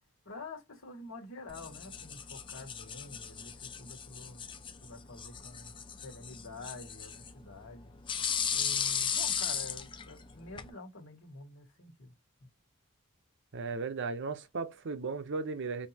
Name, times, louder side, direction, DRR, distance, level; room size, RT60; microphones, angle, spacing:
voice 1, 0.2-4.4 4.8-7.9 8.5-12.1 12.4-12.5, left 3 dB, 70° left, 1.6 m, -48 dB
sound 1, 1.5-10.7, left 7 dB, 25° left, 0.4 m, -37 dB
voice 2, 13.5-15.9, right 4 dB, 60° right, 0.7 m, -36 dB
5.1 x 2.7 x 2.8 m
head